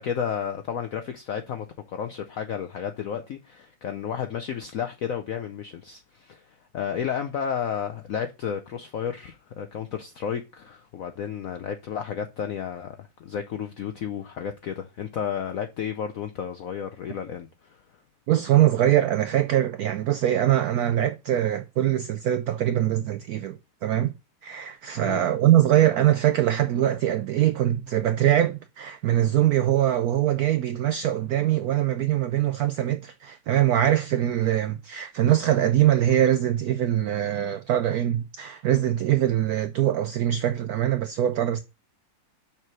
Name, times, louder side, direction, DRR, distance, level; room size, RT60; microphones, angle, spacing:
voice 1, 0.0-6.4 6.7-17.8 25.0-25.2, left 8 dB, 75° left, 0.7 m, -32 dB
voice 2, 18.3-24.1 24.4-41.6, right 12 dB, 85° right, 0.8 m, -23 dB
5.9 x 4.5 x 6.1 m
omnidirectional pair, 2.1 m